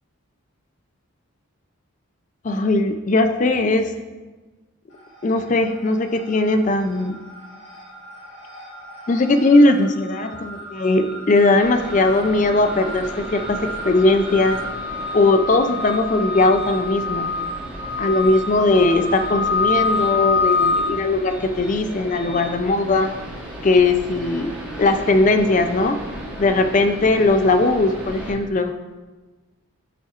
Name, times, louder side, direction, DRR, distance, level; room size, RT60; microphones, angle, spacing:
voice 1, 2.4-3.9 5.2-7.2 9.1-14.6 15.1-17.3 18.0-23.1 23.6-24.5 24.8-26.0 26.4-28.7, left 2 dB, 35° left, 8 dB, 0.4 m, -19 dB
sound 1, 4.9-5.6 5.9-22.5, left 3 dB, 60° left, 1.9 m, -28 dB
sound 2, 11.6-28.3, equal, 5° right, 1.3 m, -36 dB
9.5 x 5.6 x 2.4 m, 1.3 s
head